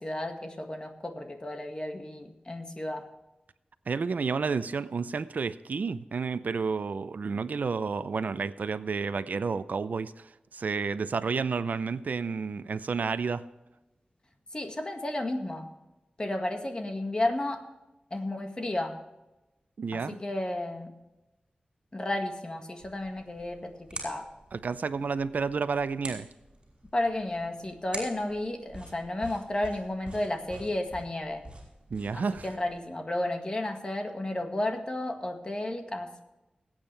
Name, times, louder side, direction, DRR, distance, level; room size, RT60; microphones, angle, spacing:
voice 1, 0.0-3.0 14.5-15.7 16.2-17.7 18.1-19.0 19.9-20.9 21.9-24.3 26.9-31.4 32.1-36.2, left 1 dB, 30° left, 4 dB, 1.8 m, -32 dB
voice 2, 3.9-13.4 19.8-20.2 24.5-26.3 31.9-32.5, right 5 dB, 80° right, 13 dB, 0.6 m, -31 dB
sound 1, 22.8-32.8, right 2 dB, 40° right, 5.2 m, -46 dB
21.0 x 8.9 x 3.4 m, 0.99 s
wide cardioid pair, 105°, 3 cm